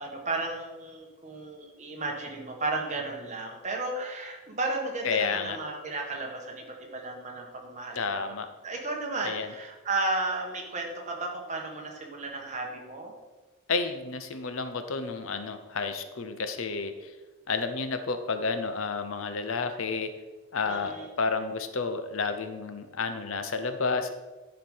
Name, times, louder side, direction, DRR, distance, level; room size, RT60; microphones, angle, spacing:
voice 1, 0.0-8.2 8.6-13.1 20.6-21.1, right 2 dB, 35° right, 1 dB, 1.4 m, -34 dB
voice 2, 5.0-5.6 8.0-8.5 9.2-9.5 13.7-17.1 17.5-20.1 20.5-24.2, left 4 dB, 70° left, 9 dB, 0.7 m, -31 dB
10.5 x 4.9 x 5.4 m, 1.2 s
head